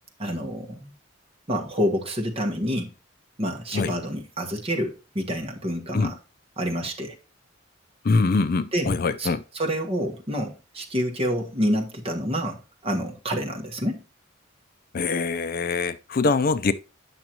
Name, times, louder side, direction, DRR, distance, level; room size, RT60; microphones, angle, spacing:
voice 1, 0.2-0.9 1.5-2.9 3.4-6.2 6.6-7.2 8.7-9.3 9.5-14.0, equal, 30° right, 1.3 m, -28 dB
voice 2, 8.0-9.4 14.9-16.7, left 4 dB, 45° left, 0.4 m, -23 dB
9.0 x 6.1 x 2.9 m
head